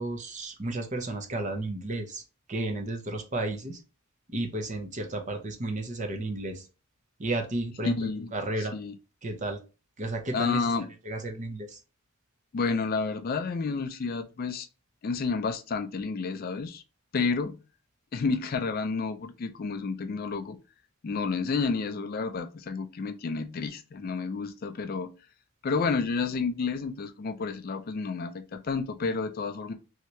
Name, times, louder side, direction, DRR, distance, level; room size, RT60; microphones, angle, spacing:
voice 1, 0.0-2.2 2.5-3.8 4.3-6.6 7.2-8.7 9.2-9.6 10.0-10.7 11.0-11.8, right 2 dB, 35° right, 4 dB, 0.6 m, -32 dB
voice 2, 7.8-8.3 8.6-8.9 10.3-10.9 12.5-14.7 15.0-16.8 17.1-17.6 18.1-20.6 21.0-25.1 25.6-29.7, left 4 dB, 40° left, 9 dB, 0.3 m, -30 dB
3.2 x 2.8 x 3.0 m, 0.31 s
head